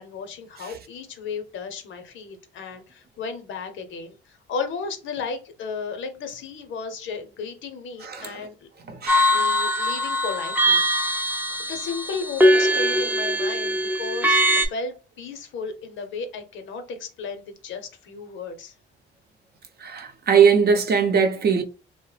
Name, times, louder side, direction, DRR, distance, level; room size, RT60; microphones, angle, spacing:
voice 1, 0.0-8.7 9.3-11.3 11.6-18.7, left 5 dB, 75° left, 0.8 m, -34 dB
voice 2, 8.0-8.4 8.9-9.4 19.8-21.6, right 6 dB, 55° right, 0.7 m, -20 dB
sound 1, 9.1-14.7, equal, 10° right, 0.5 m, -21 dB
2.8 x 2.1 x 3.2 m
cardioid pair, 90°, 20 cm